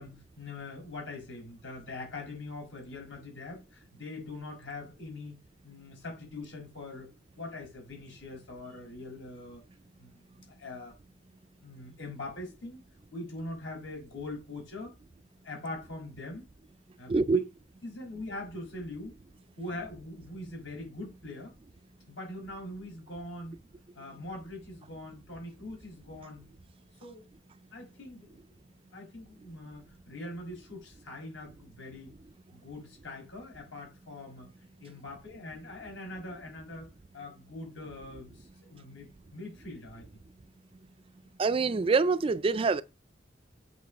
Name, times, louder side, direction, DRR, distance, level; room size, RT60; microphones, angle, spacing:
voice 1, 0.0-5.4 5.6-7.1 7.4-9.6 10.0-11.0 11.6-12.8 13.1-14.9 15.4-16.5 17.0-17.1 17.8-19.2 19.6-21.5 22.1-23.6 24.0-26.5 27.0-27.3 27.7-28.6 28.9-32.1 32.5-34.5 34.8-40.1, left 2 dB, 75° left, 5.4 m, -42 dB
voice 2, 17.1-17.4 41.4-42.8, right 4 dB, 30° right, 0.3 m, -25 dB
8.3 x 5.3 x 5.1 m
head